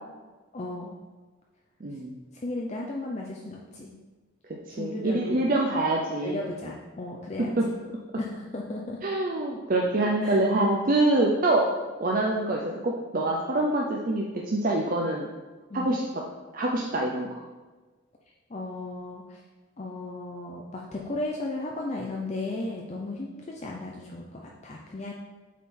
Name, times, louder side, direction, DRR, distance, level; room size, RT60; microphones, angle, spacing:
voice 1, 0.5-0.9 2.4-3.9 4.7-5.5 6.2-7.8 8.2-9.0 10.2-10.4 15.7-16.0 18.5-19.4 19.8-25.1, left 2 dB, 35° left, -1 dB, 0.5 m, -35 dB
voice 2, 1.8-2.1 4.8-6.4 7.6-7.7 9.0-11.7 12.0-15.3 15.7-16.0 16.5-17.4, right 2 dB, 40° right, -1 dB, 0.5 m, -25 dB
7.2 x 4.3 x 3.7 m, 1.3 s
head